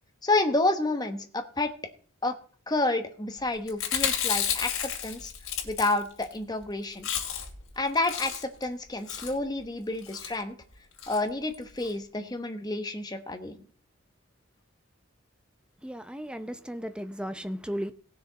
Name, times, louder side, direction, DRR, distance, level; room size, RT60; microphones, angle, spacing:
voice 1, 0.2-1.7 2.2-2.3 2.7-5.3 5.6-7.1 7.8-10.5 11.1-13.6, left 2 dB, 20° left, 7 dB, 1.1 m, -29 dB
Chewing mastication, 3.7-6.3 6.6-6.7 6.9-7.6 7.9-8.6 9.1-9.4 10.0-10.3 11.0-11.2 11.5-11.6 11.8-11.9, left 9 dB, 85° left, 2.5 m, -31 dB
voice 2, 15.8-17.9, equal, 5° right, 10 dB, 0.6 m, -35 dB
18.0 x 6.5 x 4.1 m, 0.44 s
head